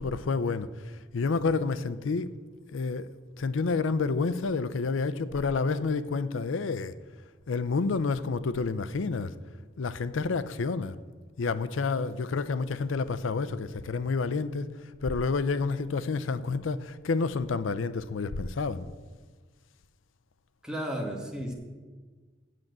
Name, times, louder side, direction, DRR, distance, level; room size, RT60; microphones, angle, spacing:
voice 1, 0.0-2.4 2.7-3.1 3.4-6.9 7.5-9.4 9.8-11.0 11.4-18.9, left 4 dB, 85° left, 0.5 m, -29 dB
voice 2, 20.6-21.5, equal, 5° right, 1.5 m, -34 dB
7.7 x 7.3 x 7.8 m
head